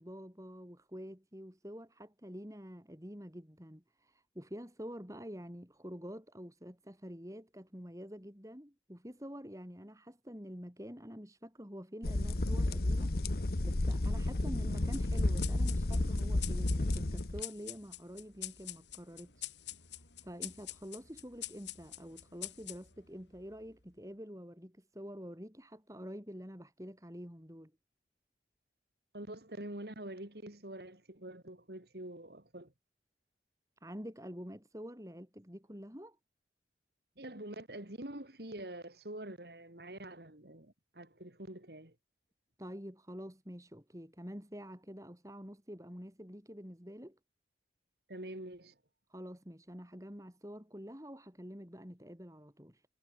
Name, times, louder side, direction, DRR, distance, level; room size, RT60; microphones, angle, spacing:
voice 1, 0.0-13.2 13.6-19.5 19.9-27.7 33.8-36.2 42.6-47.2 49.1-52.9, equal, 20° right, 5.3 m, -47 dB
sound 1, 12.0-17.4, left 2 dB, 55° left, 1.0 m, -32 dB
sound 2, 14.9-23.8, left 14 dB, 75° left, 7.7 m, -46 dB
voice 2, 29.1-32.7 37.2-41.9 48.1-48.8, right 1 dB, 60° right, 3.1 m, -46 dB
head